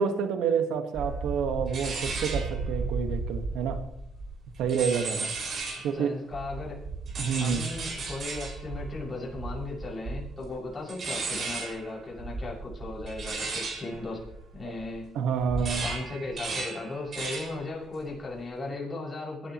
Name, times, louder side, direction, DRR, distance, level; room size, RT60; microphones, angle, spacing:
voice 1, 0.0-3.8 4.6-5.3 5.8-6.1 7.2-7.7 14.6-14.7 15.1-15.9, right 6 dB, 90° right, 7 dB, 1.5 m, -28 dB
sound 1, 0.9-6.0 6.3-15.0 15.3-17.7 17.9-18.4, right 3 dB, 55° right, 5.3 m, -35 dB
voice 2, 5.9-6.8 7.4-14.2 14.5-15.1 15.8-19.5, left 2 dB, 30° left, -4 dB, 6.4 m, -36 dB
21.5 x 11.5 x 3.1 m, 0.78 s
cardioid pair, 90°, 0 cm